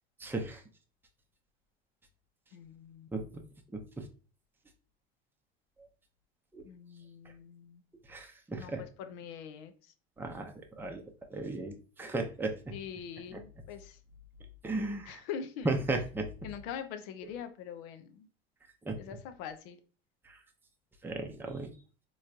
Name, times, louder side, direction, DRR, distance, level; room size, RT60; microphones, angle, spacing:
voice 1, 0.2-0.6 3.1-3.2 3.7-3.8 6.5-6.6 8.1-8.8 10.2-11.0 11.3-12.7 13.3-13.4 14.6-15.2 15.6-16.3 18.9-19.0 21.0-21.7, right 2 dB, 5° right, 3 dB, 0.7 m, -35 dB
voice 2, 2.5-3.3 6.6-7.8 8.5-9.7 12.7-14.0 15.1-15.7 16.4-18.3 19.0-19.8, left 8 dB, 60° left, 9 dB, 0.8 m, -43 dB
4.2 x 3.1 x 2.5 m, 0.37 s
hypercardioid pair, 75°, 30 cm